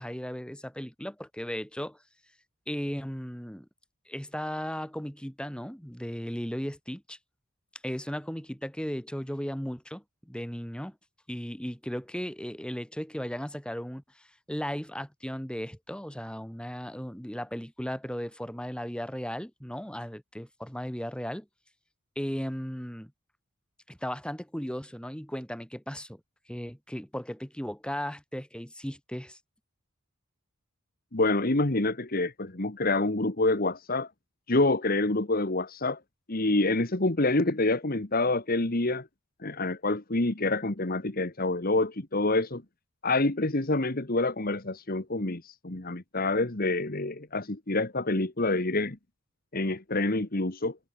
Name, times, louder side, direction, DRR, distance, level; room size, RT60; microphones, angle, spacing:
voice 1, 0.0-2.0 2.7-3.7 4.1-7.2 7.8-11.0 11.3-21.5 22.2-23.1 23.9-26.2 26.5-29.4, equal, 5° left, 4.2 m, -36 dB
voice 2, 31.1-34.1 34.5-36.0 36.3-39.1 39.4-42.6 43.0-49.0 49.5-50.8, left 2 dB, 45° left, 1.7 m, -27 dB
head